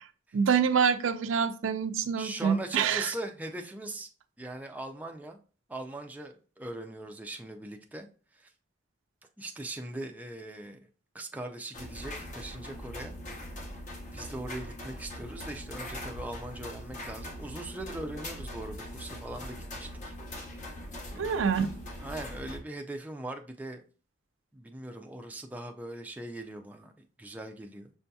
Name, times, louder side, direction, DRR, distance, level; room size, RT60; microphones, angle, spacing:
voice 1, 0.3-3.1 21.2-21.7, right 6 dB, 90° right, 0.4 m, -26 dB
voice 2, 2.2-4.1 4.4-5.4 5.7-8.1 8.3-8.5 9.4-10.8 11.1-13.7 14.1-20.1 20.4-20.7 21.1-21.5 22.0-23.8 24.5-26.9 27.2-27.9, right 1 dB, 10° right, 0.3 m, -40 dB
sound 1, 11.7-22.6, left 1 dB, 40° left, 0.8 m, -41 dB
6.1 x 2.7 x 2.2 m
head